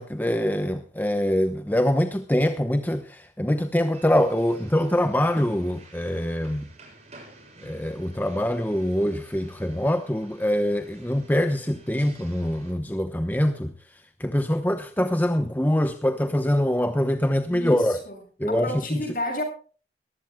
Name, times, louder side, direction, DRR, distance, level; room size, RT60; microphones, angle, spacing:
voice 1, 0.0-6.7 7.6-13.7 14.2-18.0 18.4-19.0, left 1 dB, 10° left, 0.9 m, -24 dB
sound 1, 3.9-12.7, right 2 dB, 40° right, 6.7 m, -51 dB
voice 2, 17.5-18.2 18.5-19.4, left 1 dB, 50° left, 7.6 m, -31 dB
22.5 x 15.5 x 2.2 m
head